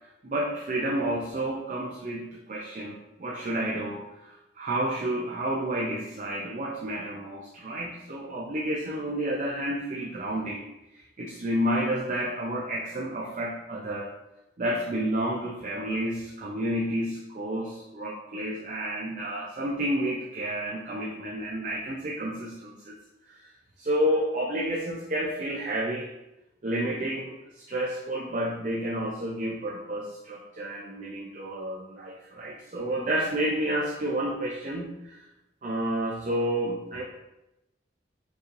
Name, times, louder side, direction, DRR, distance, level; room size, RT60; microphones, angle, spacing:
voice 1, 0.2-10.6 10.9-14.1 14.6-23.0 23.3-23.5 23.8-26.1 26.6-35.2 35.6-37.0, right 1 dB, 45° right, -3 dB, 0.5 m, -30 dB
5.3 x 3.1 x 2.5 m, 0.93 s
head